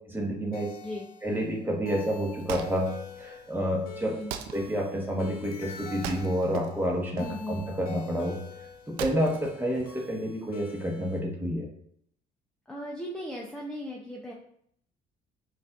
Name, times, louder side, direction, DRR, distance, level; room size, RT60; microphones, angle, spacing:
voice 1, 0.1-0.7 1.2-4.2 4.5-8.4 8.9-11.7, equal, 10° right, 0 dB, 1.1 m, -29 dB
sound 1, 0.5-11.2, left 5 dB, 65° left, 0.8 m, -46 dB
Wood, 2.1-10.4, right 8 dB, 80° right, 0.4 m, -42 dB
voice 2, 7.2-7.7 12.7-14.3, equal, 5° left, -3 dB, 0.6 m, -37 dB
5.4 x 2.5 x 2.3 m, 0.69 s
supercardioid pair, 75°, 17 cm